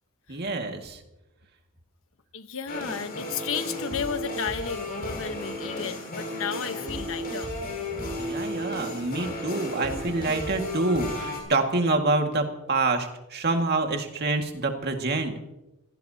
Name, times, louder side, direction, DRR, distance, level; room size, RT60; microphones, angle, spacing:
voice 1, 0.3-1.0 8.2-15.3, right 3 dB, 50° right, 4 dB, 2.1 m, -26 dB
voice 2, 2.3-7.5, left 6 dB, 65° left, 9 dB, 1.1 m, -33 dB
sound 1, 2.7-11.4, left 1 dB, 45° left, 6.3 m, -34 dB
26.0 x 17.0 x 2.9 m, 0.93 s
head